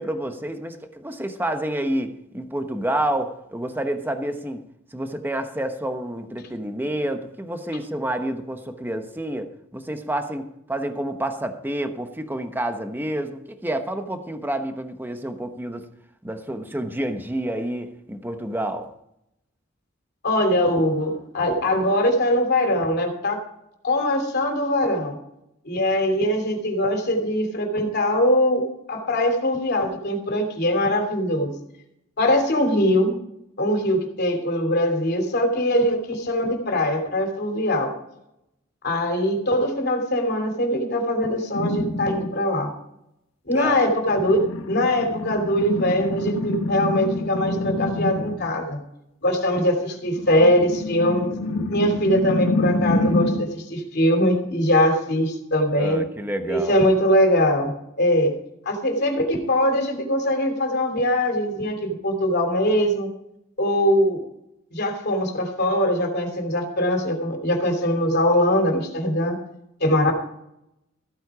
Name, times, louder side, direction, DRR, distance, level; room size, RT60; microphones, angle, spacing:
voice 1, 0.0-4.7 4.9-15.9 16.2-18.9 43.5-43.8 55.8-56.8, right 1 dB, 10° right, 1.1 m, -29 dB
voice 2, 20.2-23.4 23.8-25.2 25.6-28.6 28.9-31.5 32.2-33.2 33.6-37.9 38.8-42.7 43.4-48.8 49.2-51.3 51.7-56.0 56.4-58.3 58.6-63.1 63.6-64.2 64.7-69.4 69.8-70.1, left 1 dB, 55° left, 3.0 m, -22 dB
sound 1, 41.5-42.3 44.0-48.5 50.0-53.6, left 1 dB, 80° left, 1.3 m, -27 dB
15.0 x 8.8 x 4.8 m
head